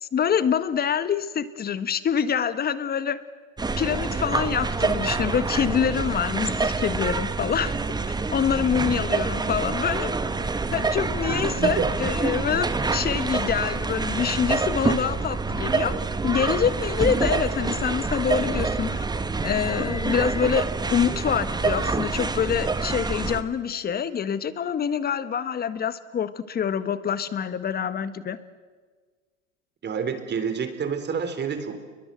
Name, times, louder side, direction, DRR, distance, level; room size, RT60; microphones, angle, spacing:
voice 1, 0.0-3.2 3.8-7.7 8.3-10.3 10.7-15.9 16.2-19.1 19.4-28.4, left 7 dB, 25° left, 13 dB, 1.5 m, -26 dB
sound 1, 3.6-23.4, right 4 dB, 10° right, 1.3 m, -26 dB
voice 2, 11.3-11.9 29.8-31.8, right 6 dB, 25° right, 9 dB, 3.7 m, -29 dB
29.5 x 22.5 x 7.7 m, 1.5 s
hypercardioid pair, 95°, 39 cm